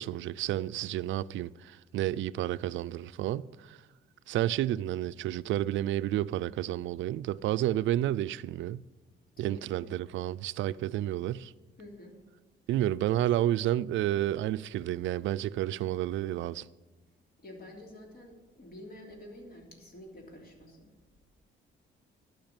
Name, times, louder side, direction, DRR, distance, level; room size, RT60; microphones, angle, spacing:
voice 1, 0.0-3.8 4.3-8.8 9.4-11.5 12.7-16.7, right 13 dB, 75° right, 0.4 m, -30 dB
voice 2, 9.4-9.9 11.8-12.2 17.4-20.9, left 1 dB, 50° left, 3.1 m, -49 dB
12.0 x 5.9 x 8.8 m
cardioid pair, 90°, 20 cm